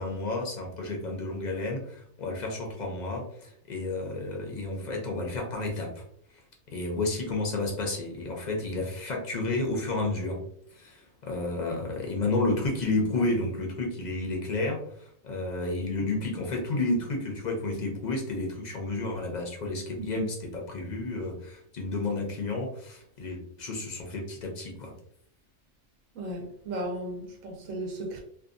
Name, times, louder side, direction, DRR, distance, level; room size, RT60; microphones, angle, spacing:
voice 1, 0.0-6.0 6.7-10.4 10.7-24.9, left 2 dB, 50° left, 0 dB, 0.5 m, -31 dB
voice 2, 26.1-28.2, right 1 dB, 90° right, 1 dB, 1.0 m, -35 dB
2.6 x 2.3 x 2.5 m, 0.67 s
omnidirectional pair, 1.3 m